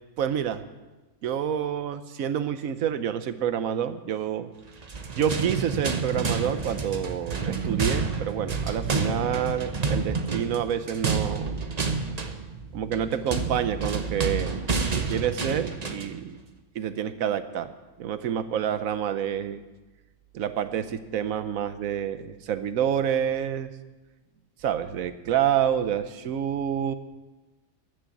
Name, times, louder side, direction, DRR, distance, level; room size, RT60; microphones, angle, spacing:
voice 1, 0.2-0.6 1.2-4.5 5.2-11.6 12.7-14.7 14.9-16.4 16.7-17.7 18.0-19.6 20.3-23.7 24.6-26.9, right 9 dB, 85° right, 12 dB, 1.2 m, -28 dB
sound 1, 4.8-16.2, right 4 dB, 35° right, 0.9 m, -29 dB
13.5 x 6.6 x 8.2 m, 1.2 s
omnidirectional pair, 1.4 m